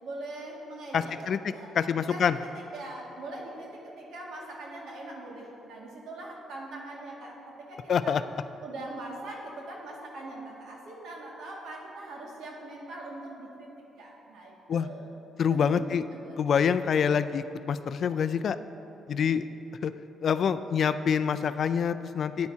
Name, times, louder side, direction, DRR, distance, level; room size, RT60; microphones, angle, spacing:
voice 1, 0.0-1.1 1.5-7.4 7.7-8.2 8.6-13.7 14.0-15.1 15.5-15.8 16.2-16.4, right 2 dB, 75° right, -3 dB, 2.1 m, -41 dB
voice 2, 0.9-1.4 1.7-2.4 7.9-8.2 14.7-14.9 15.4-16.0 16.4-18.6 19.1-19.4 19.8-19.9 20.2-22.5, left 7 dB, 55° left, 12 dB, 0.3 m, -26 dB
13.5 x 9.5 x 2.8 m, 2.9 s
cardioid pair, 90°, 0 cm